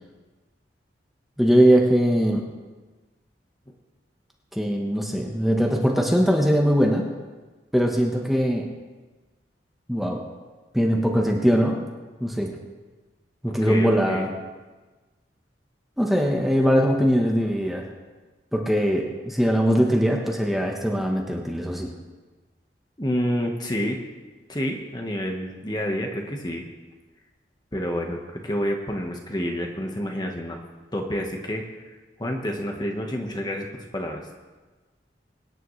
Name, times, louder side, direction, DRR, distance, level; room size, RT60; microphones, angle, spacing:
voice 1, 1.4-2.5 4.5-7.0 7.7-8.7 9.9-10.2 10.7-11.8 12.2-12.5 13.4-14.3 16.0-17.9 18.5-21.9, equal, ahead, -1 dB, 1.1 m, -21 dB
voice 2, 13.6-14.3 23.0-24.0 24.5-26.6 27.7-30.6 30.9-34.3, equal, 20° left, 2 dB, 1.3 m, -29 dB
23.5 x 10.0 x 3.2 m, 1.3 s
head